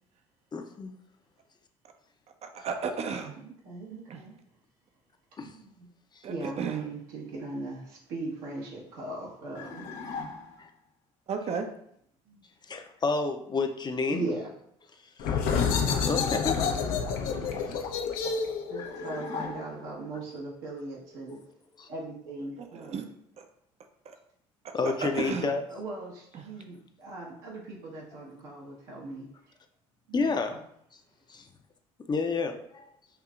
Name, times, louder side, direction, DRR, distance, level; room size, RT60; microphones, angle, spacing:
voice 1, 0.5-0.9 5.4-5.5 10.6-10.7 12.7-14.2 15.2-15.4 16.0-17.8 18.8-18.9 21.8-21.9 24.7-25.6 30.1-30.6 31.3-31.4 32.1-32.9, left 4 dB, 30° left, 6 dB, 0.6 m, -30 dB
voice 2, 2.4-3.3 4.1-4.2 6.2-6.8 11.3-11.7 17.4-17.5 22.6-23.0 23.4-23.5 24.1-24.2 24.8-25.5 26.3-26.4, right 5 dB, 45° right, 6 dB, 0.6 m, -34 dB
voice 3, 3.4-4.3 5.4-5.9 6.2-9.9 12.3-12.4 14.1-14.5 16.9-17.1 18.7-21.4 21.9-23.0 25.7-29.3 30.1-30.6, right 2 dB, 75° right, -4 dB, 1.3 m, -39 dB
sound 1, 9.6-10.7 18.8-20.1, left 4 dB, 50° left, 1.0 m, -39 dB
sound 2, 15.2-20.6, left 6 dB, 70° left, 0.6 m, -29 dB
5.6 x 2.7 x 2.4 m, 0.71 s
hypercardioid pair, 70°, 15 cm